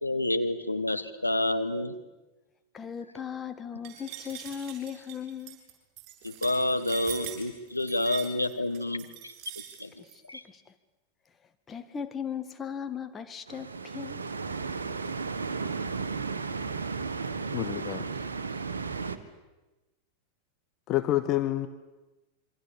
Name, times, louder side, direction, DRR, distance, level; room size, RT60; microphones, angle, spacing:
voice 1, 0.0-2.0 6.2-9.0 9.8-9.9 10.3-10.4, left 1 dB, 85° left, 9 dB, 1.5 m, -28 dB
voice 2, 2.7-5.6 10.1-10.6 11.7-14.2, left 7 dB, 20° left, 9 dB, 1.9 m, -38 dB
sound 1, 3.8-10.2, right 11 dB, 40° right, 7.7 m, -43 dB
sound 2, 13.5-19.2, right 4 dB, 70° right, 1.6 m, -34 dB
voice 3, 17.5-18.1 20.9-21.7, left 14 dB, 35° left, 11 dB, 1.2 m, -28 dB
27.0 x 24.5 x 8.7 m, 1.1 s
figure-of-eight pair, 90°, 0 cm